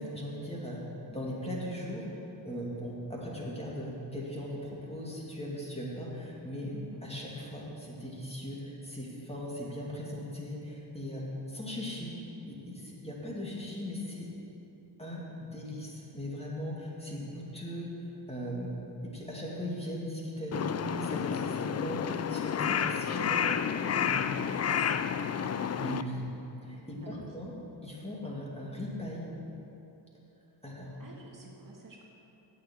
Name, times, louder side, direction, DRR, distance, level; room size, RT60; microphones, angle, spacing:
voice 1, 0.0-6.7 7.0-12.1 12.4-14.3 15.0-24.4 25.8-26.3 26.6-27.5 27.8-29.3 30.6-30.9, equal, 15° left, -4 dB, 2.5 m, -39 dB
voice 2, 6.7-7.0 22.4-23.1 23.8-25.7 26.8-27.3 31.0-32.0, right 2 dB, 45° right, -2 dB, 1.7 m, -51 dB
Crow, 20.5-26.0, left 8 dB, 35° left, 0.4 m, -30 dB
8.6 x 7.1 x 7.7 m, 3.0 s
cardioid pair, 65°, 46 cm